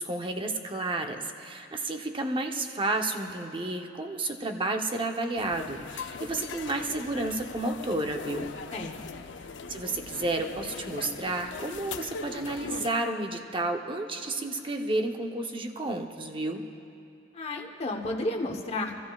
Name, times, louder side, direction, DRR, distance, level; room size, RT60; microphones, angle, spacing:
voice 1, 0.0-8.5 9.7-16.6, right 2 dB, 30° right, 3 dB, 0.8 m, -31 dB
sound 1, 5.4-12.9, left 5 dB, 90° left, 0.6 m, -40 dB
voice 2, 8.7-9.2 17.3-19.0, left 2 dB, 35° left, 1 dB, 1.0 m, -32 dB
28.0 x 14.0 x 2.4 m, 2.6 s
head